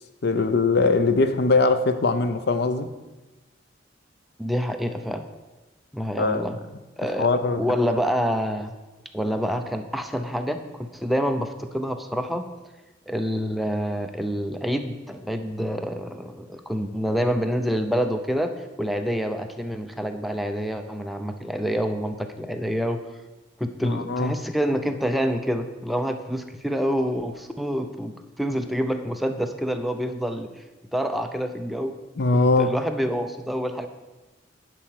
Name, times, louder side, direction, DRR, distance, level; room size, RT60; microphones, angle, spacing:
voice 1, 0.2-2.9 6.2-6.4 7.2-7.6 23.8-24.4 32.2-32.7, left 3 dB, 60° left, 0.7 m, -21 dB
voice 2, 4.4-5.2 5.9-6.6 7.0-7.3 7.6-8.7 9.1-12.4 13.1-18.5 18.8-23.0 23.6-30.5 30.9-31.9 32.3-33.9, equal, ahead, 0.6 m, -27 dB
11.0 x 4.4 x 7.5 m
head